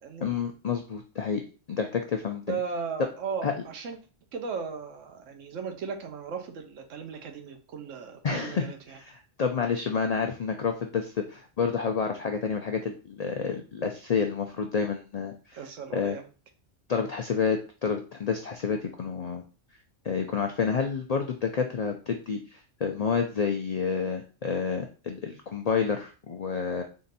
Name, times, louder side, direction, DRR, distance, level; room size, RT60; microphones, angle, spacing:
voice 1, 0.2-1.4 1.7-2.6 3.4-3.5 8.2-15.6 15.9-16.2 16.9-19.4 20.0-26.8, left 6 dB, 90° left, 4 dB, 0.3 m, -29 dB
voice 2, 2.5-4.0 4.3-9.0 15.5-16.3, right 6 dB, 80° right, 5 dB, 1.1 m, -36 dB
3.7 x 2.6 x 4.0 m, 0.35 s
omnidirectional pair, 1.3 m